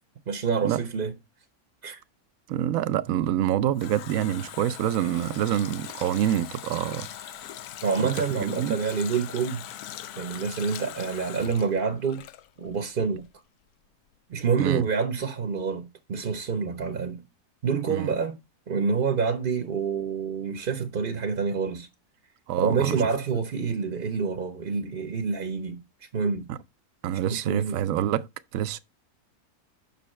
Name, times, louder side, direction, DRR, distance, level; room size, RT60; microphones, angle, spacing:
voice 1, 0.3-1.2 1.8-2.0 7.8-9.7 10.2-12.2 12.6-13.3 14.3-17.2 17.6-18.4 18.7-21.9 22.6-25.8 26.1-26.5 27.2-27.9, right 5 dB, 45° right, 0.8 m, -27 dB
voice 2, 2.5-7.1 8.6-8.8 14.6-14.8 17.9-18.1 22.5-23.0 26.5-26.6 27.0-28.3 28.5-28.8, right 11 dB, 70° right, 0.9 m, -26 dB
Water tap faucet, 3.3-12.9 13.2-13.3, left 11 dB, 80° left, 1.1 m, -41 dB
6.9 x 5.7 x 4.2 m
omnidirectional pair, 1.6 m